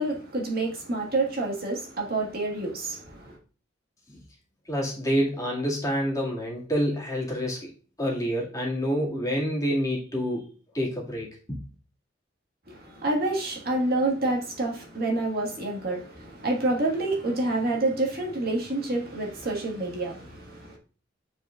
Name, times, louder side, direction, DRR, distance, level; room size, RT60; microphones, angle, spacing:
voice 1, 0.0-3.4 12.7-20.8, right 2 dB, 55° right, 1.7 m, -28 dB
voice 2, 4.7-7.7 8.0-10.4 10.7-11.6, equal, 20° left, 2.1 m, -27 dB
8.5 x 4.9 x 2.4 m
head